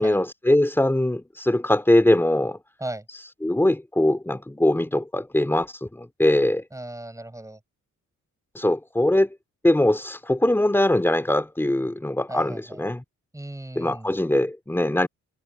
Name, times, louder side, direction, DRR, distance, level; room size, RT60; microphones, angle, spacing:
voice 1, 0.0-2.6 3.4-6.6 8.5-9.3 9.6-13.0 13.7-15.1, left 1 dB, 10° left, 3.4 m, -22 dB
voice 2, 6.7-7.6 12.3-12.8 13.3-14.1, right 1 dB, 10° right, 8.0 m, -36 dB
cardioid pair, 110°, 29 cm